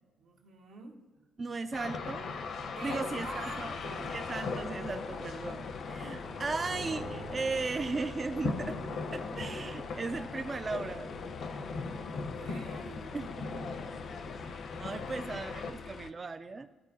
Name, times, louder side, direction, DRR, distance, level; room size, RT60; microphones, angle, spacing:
voice 1, 0.2-1.0 2.8-4.2 11.9-14.0, right 3 dB, 80° right, 0 dB, 1.2 m, -48 dB
voice 2, 1.4-2.3 2.8-3.8 4.1-8.8 9.1-11.1 13.1-13.6 14.4-16.7, right 3 dB, 35° right, 8 dB, 0.3 m, -37 dB
sound 1, 1.7-15.7, left 4 dB, 70° left, 0.7 m, -39 dB
sound 2, 3.2-16.1, left 6 dB, 50° left, 0.3 m, -47 dB
Bowed string instrument, 6.2-11.4, right 6 dB, 50° right, 0.8 m, -50 dB
12.5 x 4.4 x 2.7 m, 1.3 s
cardioid pair, 90°, 0 cm